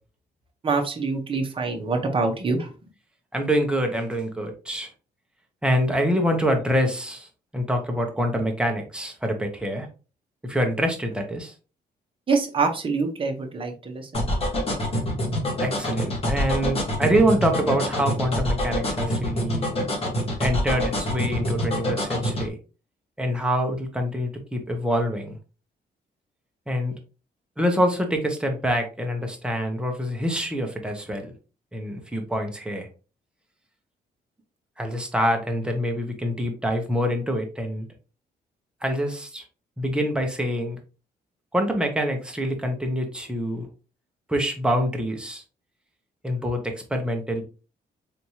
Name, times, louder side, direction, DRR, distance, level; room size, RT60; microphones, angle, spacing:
voice 1, 0.6-2.7 12.3-14.9, right 4 dB, 30° right, 3 dB, 1.0 m, -26 dB
voice 2, 3.3-4.9 5.6-7.3 7.5-9.9 10.4-11.5 15.6-19.7 20.4-22.6 23.2-25.4 26.7-26.9 27.6-31.3 31.7-32.9 34.8-37.9 38.8-39.4 39.8-40.8 41.5-43.7 44.3-45.4 46.2-47.4, equal, 5° right, 3 dB, 1.0 m, -25 dB
sound 1, 14.1-22.5, equal, 35° left, 1.5 m, -25 dB
4.2 x 3.3 x 2.9 m, 0.34 s
cardioid pair, 135°, 17 cm